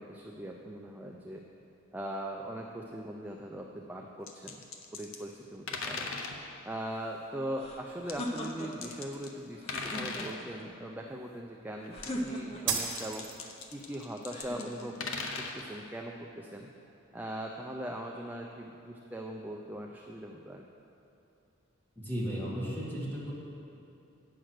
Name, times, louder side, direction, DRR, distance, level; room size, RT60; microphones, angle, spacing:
voice 1, 0.0-1.4 1.9-4.6 4.9-6.1 6.7-13.3 13.7-15.0 15.4-16.7 17.1-20.6, right 1 dB, 10° right, 0 dB, 0.4 m, -40 dB
sound 1, 4.3-5.2 5.7-6.4 8.1-9.4 9.7-10.4 11.8-12.3 12.9-15.6, left 4 dB, 70° left, 0.8 m, -39 dB
sound 2, 7.6-8.9 9.6-10.6 11.9-12.8 14.3-15.2, equal, 30° left, 0.8 m, -39 dB
sound 3, 12.7-13.7, right 6 dB, 55° right, 1.3 m, -33 dB
voice 2, 22.0-23.3, equal, 10° left, -6 dB, 1.9 m, -35 dB
9.0 x 5.9 x 6.4 m, 2.8 s
head